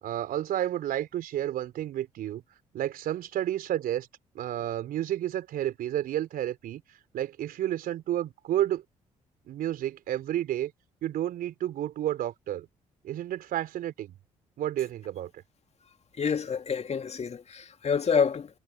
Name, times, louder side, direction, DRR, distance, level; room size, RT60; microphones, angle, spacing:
voice 1, 0.0-2.4 2.7-4.1 4.3-6.8 7.1-8.8 9.5-10.7 11.0-12.7 13.0-14.1 14.6-15.4, right 12 dB, 60° right, 3.9 m, -31 dB
voice 2, 16.2-18.5, left 6 dB, 40° left, 2.4 m, -27 dB
figure-of-eight pair, 45°, 16 cm